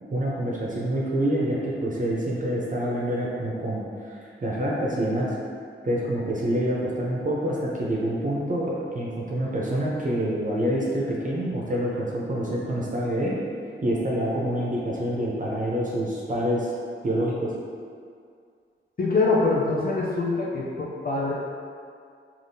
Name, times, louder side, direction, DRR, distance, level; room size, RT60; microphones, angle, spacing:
voice 1, 0.0-5.4 5.8-13.3 13.8-16.7 17.0-17.5, right 1 dB, 40° right, -5 dB, 0.6 m, -27 dB
voice 2, 19.0-21.3, left 3 dB, 45° left, -6 dB, 0.5 m, -24 dB
3.4 x 2.4 x 2.6 m, 2.3 s
wide cardioid pair, 65°, 21 cm